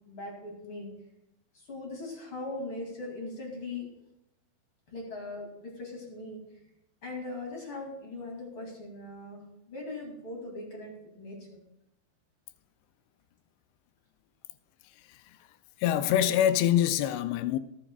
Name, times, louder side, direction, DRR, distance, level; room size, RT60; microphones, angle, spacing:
voice 1, 0.1-0.9 1.5-3.8 4.9-6.4 7.0-9.4 9.7-11.6, left 2 dB, 35° left, 2.6 m, -40 dB
voice 2, 15.0-15.4 15.8-17.6, left 11 dB, 80° left, 2.5 m, -25 dB
18.5 x 10.0 x 2.3 m
omnidirectional pair, 5.1 m